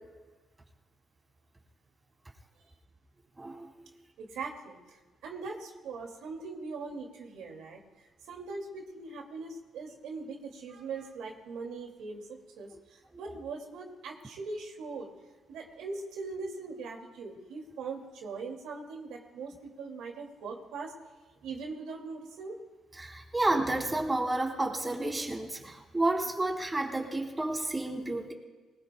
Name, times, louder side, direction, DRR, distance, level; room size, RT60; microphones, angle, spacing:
voice 1, 3.4-3.7 23.0-28.3, right 2 dB, 20° right, 1 dB, 2.8 m, -30 dB
voice 2, 4.2-5.0 5.2-15.1 15.5-20.9 21.4-22.6, right 4 dB, 85° right, 1 dB, 2.4 m, -41 dB
22.5 x 20.0 x 2.3 m, 1.3 s
cardioid pair, 90°, 0 cm